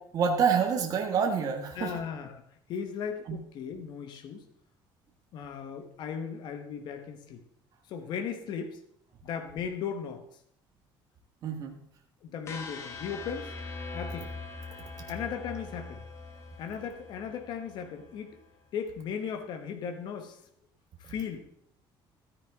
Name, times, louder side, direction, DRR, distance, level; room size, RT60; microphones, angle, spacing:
voice 1, 0.0-1.9 3.3-3.4 11.4-11.8, right 6 dB, 40° right, 3 dB, 1.5 m, -27 dB
voice 2, 1.7-2.4 2.7-4.5 5.3-7.4 7.9-8.8 9.2-10.2 12.2-13.5 13.9-14.3 15.1-16.0 16.6-18.4 18.7-20.4 21.0-21.4, left 7 dB, 55° left, 6 dB, 1.2 m, -37 dB
sound 1, 12.4-18.5, left 3 dB, 30° left, 1.3 m, -42 dB
13.5 x 9.4 x 3.7 m, 0.65 s
cardioid pair, 175°, 9 cm